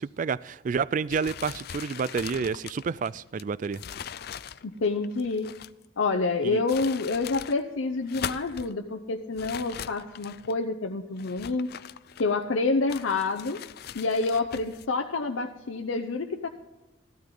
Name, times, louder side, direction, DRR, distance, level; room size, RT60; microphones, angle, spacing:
voice 1, 0.0-3.8 6.4-6.6, right 5 dB, 40° right, 0.3 m, -29 dB
sound 1, 1.1-5.9 6.5-7.6 8.0-8.7 9.4-10.6 11.2-12.5 12.9-14.9, left 8 dB, 50° left, 0.4 m, -40 dB
voice 2, 4.6-5.5 6.0-11.7 12.2-13.6 13.9-16.5, left 3 dB, 85° left, 0.7 m, -28 dB
14.5 x 12.0 x 3.8 m
head